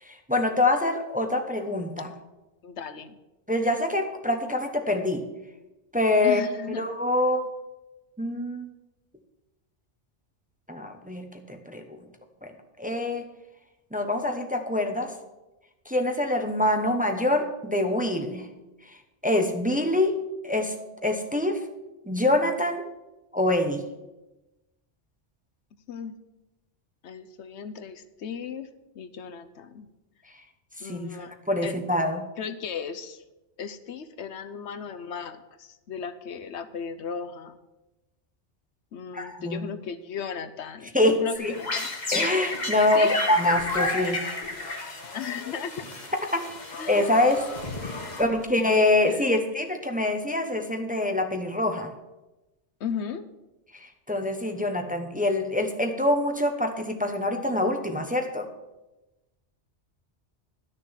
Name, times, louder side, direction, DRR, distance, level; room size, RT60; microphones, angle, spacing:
voice 1, 0.1-2.1 3.5-5.2 5.9-6.4 6.8-7.5 8.2-8.7 10.7-12.0 12.4-12.5 12.8-13.3 13.9-15.1 15.9-18.5 18.9-19.0 19.2-20.2 20.4-20.7 21.0-21.6 22.1-22.9 23.3-23.8 30.8-32.2 39.1-39.7 40.9-41.5 42.1-44.2 46.3-46.4 46.9-47.4 47.8-51.9 53.7-58.5, left 1 dB, 10° right, 4 dB, 0.9 m, -25 dB
voice 2, 2.6-3.2 6.2-6.8 25.9-26.2 27.0-28.7 28.9-29.9 30.8-31.3 31.6-31.7 32.4-33.2 33.6-37.6 38.9-41.9 42.9-43.2 45.1-45.8 46.8-47.1 49.1-49.3 52.8-53.2, left 7 dB, 75° left, 11 dB, 1.0 m, -36 dB
sound 1, 41.3-48.7, left 2 dB, 40° left, 1.5 m, -32 dB
11.5 x 6.7 x 7.2 m, 1.0 s
omnidirectional pair, 1.2 m